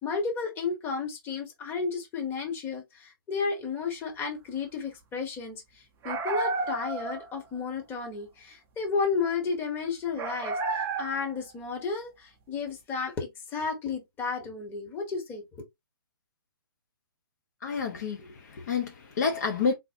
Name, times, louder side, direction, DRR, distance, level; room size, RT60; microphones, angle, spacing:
voice 1, 0.0-5.6 6.0-15.6, left 5 dB, 15° left, 1.5 m, -32 dB
sound 1, 6.0-7.4 10.2-11.4, right 3 dB, 20° right, 0.7 m, -31 dB
voice 2, 17.6-19.7, left 5 dB, 45° left, 1.1 m, -29 dB
4.1 x 4.0 x 2.7 m
figure-of-eight pair, 125°, 12 cm